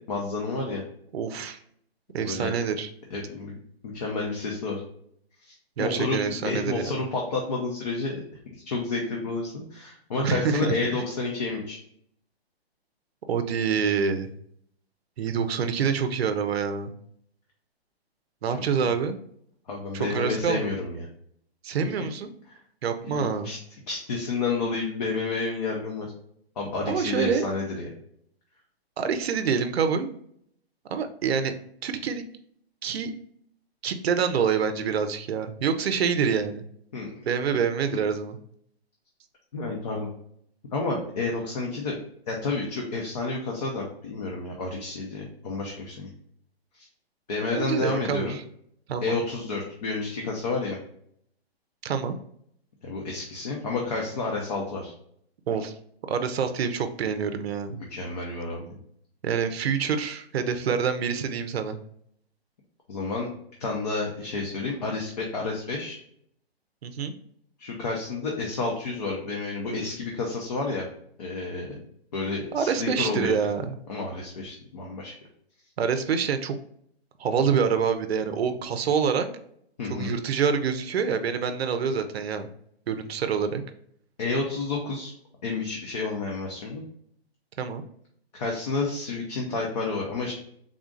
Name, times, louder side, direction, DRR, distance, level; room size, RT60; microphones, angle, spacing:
voice 1, 0.1-0.8 2.2-2.5 3.1-3.5 3.9-4.8 5.4-8.2 8.6-11.8 18.8-18.9 19.7-21.1 21.8-21.9 22.5-22.6 23.0-23.6 23.9-26.1 26.6-27.9 36.9-37.1 39.5-40.1 40.7-42.0 42.3-46.1 46.8-46.9 47.3-48.4 49.0-50.8 52.8-54.9 57.9-58.8 62.9-63.3 63.6-66.0 67.6-70.9 71.2-71.8 72.1-73.4 73.9-75.1 79.8-80.1 84.2-85.1 85.4-86.8 88.3-90.3, left 3 dB, 40° left, -1 dB, 0.6 m, -30 dB
voice 2, 1.1-1.6 2.1-2.9 5.8-7.0 10.2-11.0 13.3-14.3 15.2-16.9 18.4-19.2 19.9-20.7 21.6-22.3 22.8-23.5 26.9-27.5 29.0-30.1 30.9-31.5 31.8-32.2 32.8-33.1 33.8-36.6 37.3-38.4 47.5-48.4 48.9-49.1 51.8-52.1 55.5-55.7 56.1-57.8 59.2-61.8 66.8-67.1 72.5-73.8 75.8-76.6 77.2-79.3 79.9-82.5 82.9-83.6 87.6-87.8, right 6 dB, 75° right, 9 dB, 0.6 m, -26 dB
3.7 x 2.5 x 3.7 m, 0.68 s
hypercardioid pair, 165°, 31 cm